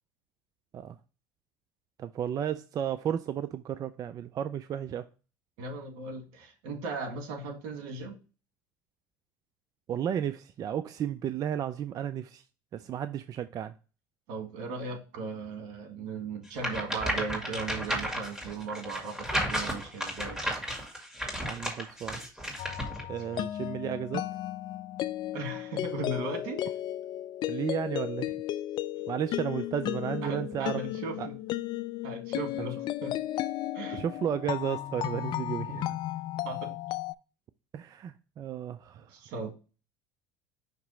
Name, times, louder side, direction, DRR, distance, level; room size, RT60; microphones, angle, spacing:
voice 1, 2.0-5.1 9.9-12.4 12.7-13.7 21.4-22.2 23.1-24.2 27.5-28.4 29.1-30.8 31.2-31.3 33.9-36.0 37.7-39.1, right 9 dB, 40° right, 0.4 m, -33 dB
voice 2, 5.6-8.2 14.3-20.6 23.3-23.5 25.3-26.7 30.2-31.4 32.0-33.1 33.7-34.0 36.4-36.7 39.0-39.5, right 3 dB, 70° right, 1.8 m, -37 dB
sound 1, 16.5-23.0, equal, 5° right, 2.2 m, -33 dB
sound 2, 22.6-37.1, left 13 dB, 50° left, 0.4 m, -34 dB
5.9 x 2.9 x 5.5 m
supercardioid pair, 100°, 10 cm